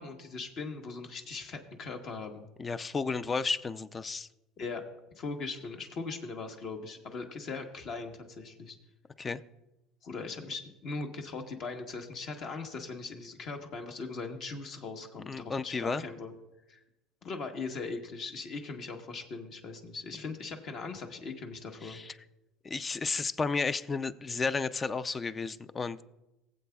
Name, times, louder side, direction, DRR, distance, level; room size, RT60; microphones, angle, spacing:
voice 1, 0.0-2.4 4.6-4.8 5.1-8.8 10.0-16.3 16.7-16.8 17.2-22.0, left 4 dB, 50° left, 4 dB, 1.1 m, -40 dB
voice 2, 2.6-4.3 9.2-9.4 15.3-16.0 21.8-22.1 22.6-26.0, left 4 dB, 25° left, 14 dB, 0.4 m, -32 dB
20.0 x 7.6 x 2.3 m, 0.96 s
supercardioid pair, 115°, 0 cm